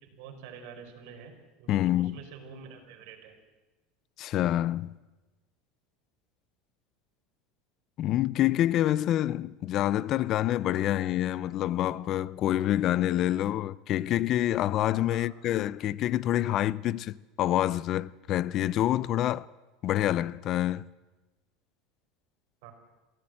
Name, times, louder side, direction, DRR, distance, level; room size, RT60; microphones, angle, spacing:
voice 1, 0.0-1.3 1.6-3.3 15.1-15.3 22.6-22.7, right 6 dB, 70° right, 4.6 m, -47 dB
voice 2, 1.7-2.2 4.2-4.9 8.0-19.5 19.8-20.9, left 13 dB, 45° left, 0.6 m, -27 dB
23.0 x 16.0 x 7.7 m
supercardioid pair, 120°, 0 cm